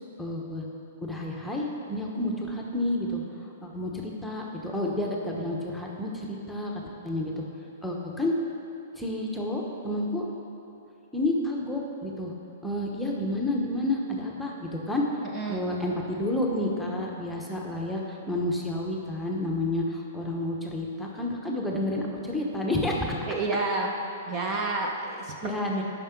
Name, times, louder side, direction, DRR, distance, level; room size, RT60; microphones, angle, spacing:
voice 1, 0.2-0.6 1.0-3.2 3.6-7.4 7.8-8.3 8.9-10.3 11.1-12.3 12.6-15.0 15.5-23.2 25.4-25.8, left 1 dB, 5° left, -2 dB, 1.0 m, -30 dB
voice 2, 15.2-15.6 23.3-23.9 24.3-25.5, right 3 dB, 30° right, 1 dB, 0.9 m, -29 dB
8.9 x 5.8 x 5.9 m, 2.8 s
hypercardioid pair, 135°, 0 cm